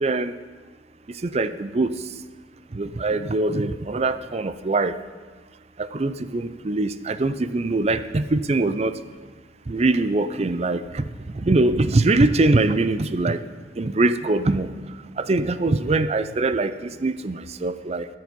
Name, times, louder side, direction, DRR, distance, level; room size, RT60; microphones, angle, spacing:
voice 1, 0.0-0.3 1.2-1.9 2.7-4.9 5.8-9.0 9.7-11.1 11.3-13.4 13.8-14.7 15.2-18.1, right 2 dB, 35° right, 13 dB, 0.5 m, -22 dB
20.5 x 7.7 x 5.3 m, 1.4 s
head